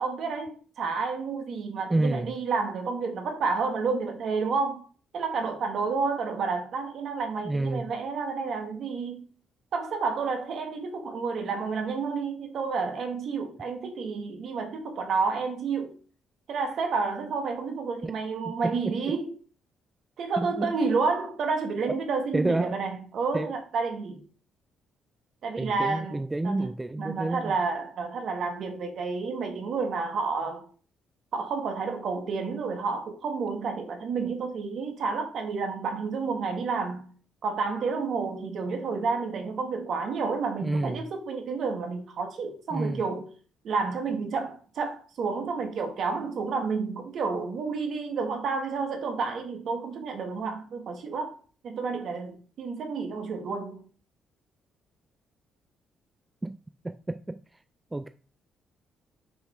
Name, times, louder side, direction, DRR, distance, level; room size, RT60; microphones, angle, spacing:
voice 1, 0.0-4.8 5.1-9.3 9.7-15.9 16.5-19.3 20.2-24.2 25.4-26.7 27.0-30.7 31.3-37.1 37.4-43.3 43.6-53.8, right 4 dB, 65° right, 1.5 m, -30 dB
voice 2, 1.9-2.3 7.4-7.9 18.0-18.1 18.6-19.1 20.4-20.8 21.9-22.0 22.3-22.8 23.3-23.5 25.6-27.5 40.6-41.0 42.7-43.0 56.4-56.6 56.8-57.4 57.9-58.1, right 2 dB, 15° right, 0.3 m, -29 dB
6.1 x 3.3 x 4.8 m
cardioid pair, 90°, 0 cm